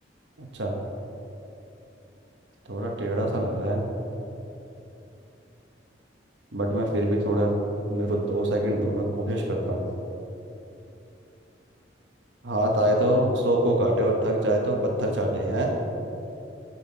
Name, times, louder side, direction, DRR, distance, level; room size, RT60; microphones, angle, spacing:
voice 1, 0.4-0.8 2.7-3.8 6.5-7.5 7.9-9.9 12.4-15.7, right 1 dB, 80° right, 1 dB, 1.0 m, -25 dB
9.9 x 5.7 x 4.5 m, 2.9 s
head